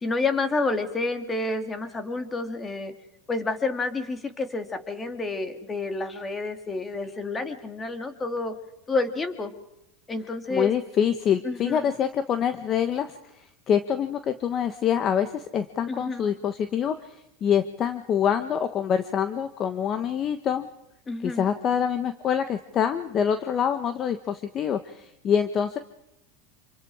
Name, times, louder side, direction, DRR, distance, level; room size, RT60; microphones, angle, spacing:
voice 1, 0.0-2.9 3.3-8.5 8.9-9.5 10.1-10.7 11.4-11.9 15.9-16.2 21.1-21.4, left 3 dB, 15° left, 7 dB, 2.7 m, -29 dB
voice 2, 10.5-13.2 13.7-17.2 17.4-20.7 21.2-25.8, left 8 dB, 35° left, 10 dB, 1.2 m, -25 dB
27.0 x 25.5 x 4.9 m, 0.85 s
supercardioid pair, 130°, 0 cm